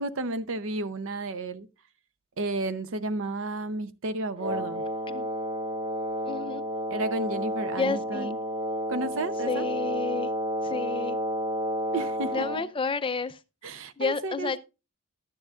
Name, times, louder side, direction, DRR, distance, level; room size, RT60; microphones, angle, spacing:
voice 1, 0.0-1.7 2.4-4.8 6.9-8.4 8.9-9.6 11.9-12.5 13.6-14.6, right 2 dB, 60° right, 0.7 m, -32 dB
Wind instrument woodwind instrument, 4.4-12.7, equal, 25° right, 0.7 m, -31 dB
voice 2, 6.3-6.6 7.8-8.3 9.5-10.3 10.6-11.2 12.3-13.4 14.0-14.6, left 4 dB, 25° left, 0.5 m, -30 dB
12.0 x 9.8 x 2.4 m
head